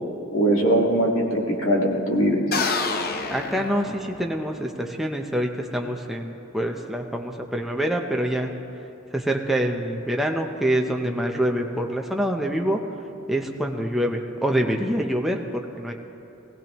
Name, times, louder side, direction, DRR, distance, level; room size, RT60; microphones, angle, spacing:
voice 1, 0.3-2.4, right 1 dB, 70° left, -1 dB, 1.9 m, -21 dB
sound 1, 2.5-4.4, left 4 dB, 45° left, 0.8 m, -28 dB
voice 2, 3.3-8.5 9.1-12.8 13.3-15.9, right 1 dB, ahead, 1 dB, 0.6 m, -26 dB
19.5 x 16.5 x 3.0 m, 2.8 s
head